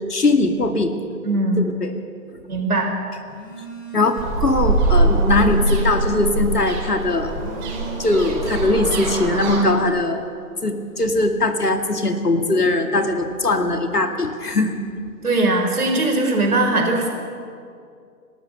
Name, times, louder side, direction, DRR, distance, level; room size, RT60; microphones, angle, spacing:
voice 1, 0.1-0.9 1.6-1.9 3.9-7.3 8.0-10.2 10.6-14.8, left 2 dB, 75° left, 6 dB, 2.4 m, -20 dB
voice 2, 1.2-1.6 2.5-2.9 15.2-17.1, right 2 dB, 65° right, 2 dB, 5.1 m, -20 dB
Telephone, 3.3-4.5 4.9-6.5 7.2-8.7, right 2 dB, 55° left, 5.4 m, -37 dB
sound 1, 4.2-9.6, right 2 dB, 30° right, 4.3 m, -22 dB
30.0 x 13.0 x 7.0 m, 2.3 s
figure-of-eight pair, 130°, 47 cm